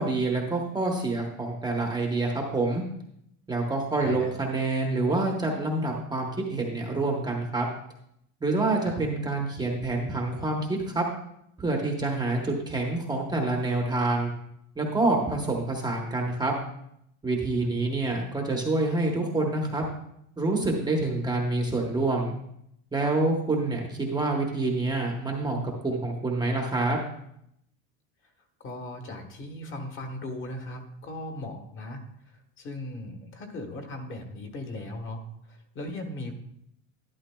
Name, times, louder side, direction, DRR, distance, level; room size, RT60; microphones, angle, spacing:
voice 1, 0.0-2.8 3.5-7.7 8.4-11.0 11.6-14.3 14.8-16.5 17.2-19.8 20.4-22.4 22.9-25.6 25.8-27.0, right 2 dB, 10° right, 0 dB, 0.9 m, -27 dB
voice 2, 4.0-4.3 8.8-9.0 17.6-18.0 28.6-36.3, left 1 dB, 35° left, 4 dB, 1.3 m, -38 dB
12.0 x 11.0 x 2.2 m, 0.75 s
cardioid pair, 160°, 36 cm